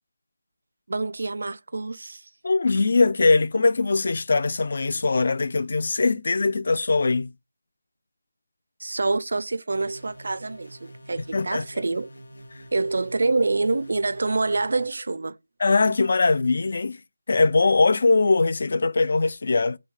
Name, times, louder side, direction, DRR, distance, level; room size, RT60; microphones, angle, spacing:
voice 1, 0.9-2.2 8.8-12.1 12.7-15.4, right 3 dB, 65° right, 0.4 m, -26 dB
voice 2, 2.4-7.3 11.3-11.6 15.6-17.0 17.3-19.8, left 3 dB, 55° left, 0.3 m, -21 dB
sound 1, 9.7-14.9, right 1 dB, 75° left, 0.8 m, -46 dB
3.0 x 2.7 x 3.7 m
figure-of-eight pair, 165°, 0 cm